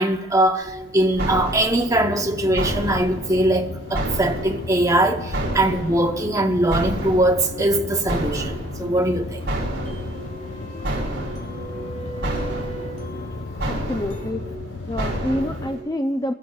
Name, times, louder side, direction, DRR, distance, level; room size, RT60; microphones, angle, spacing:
voice 1, 0.0-9.4, right 1 dB, 15° right, 0.8 m, -21 dB
sound 1, 0.6-15.8, right 1 dB, 55° right, 4.1 m, -31 dB
sound 2, 1.9-15.7, left 3 dB, 65° left, 0.7 m, -35 dB
sound 3, 3.7-14.3, equal, 40° left, 1.5 m, -40 dB
voice 2, 13.6-14.5 14.9-16.3, left 1 dB, 20° left, 0.4 m, -27 dB
23.5 x 15.0 x 2.3 m
head